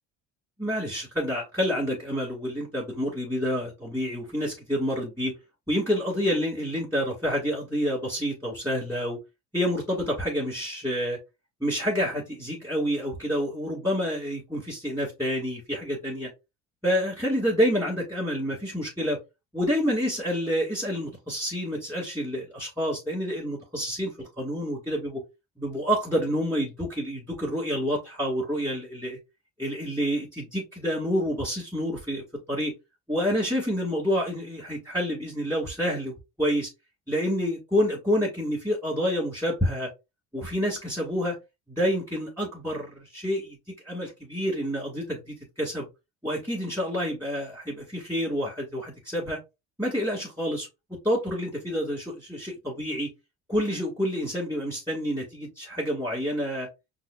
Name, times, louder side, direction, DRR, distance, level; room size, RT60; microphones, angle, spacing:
voice 1, 0.6-5.3 5.7-9.2 9.5-11.2 11.6-16.3 16.8-19.2 19.5-25.2 25.6-29.2 29.6-32.7 33.1-36.7 37.1-39.9 40.3-41.4 41.7-43.6 43.8-45.9 46.2-49.4 49.8-50.7 51.0-53.1 53.5-56.7, equal, 10° right, 2.0 m, -28 dB
5.3 x 2.5 x 2.4 m
cardioid pair, 105°, 33 cm